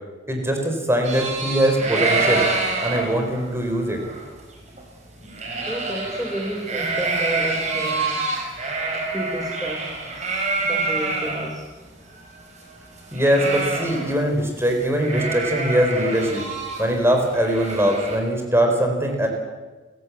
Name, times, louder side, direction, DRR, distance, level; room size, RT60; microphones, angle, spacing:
voice 1, 0.3-2.4 2.8-4.0 13.1-16.4 16.8-19.3, equal, 15° right, 3 dB, 4.3 m, -21 dB
sound 1, 1.0-11.5 11.8-11.9 12.2-14.3 14.6-14.7 15.0-18.2, right 3 dB, 40° right, 6.0 m, -27 dB
voice 2, 5.7-8.3 8.9-11.7, equal, 5° left, -1 dB, 2.4 m, -32 dB
29.0 x 16.0 x 8.6 m, 1.3 s
head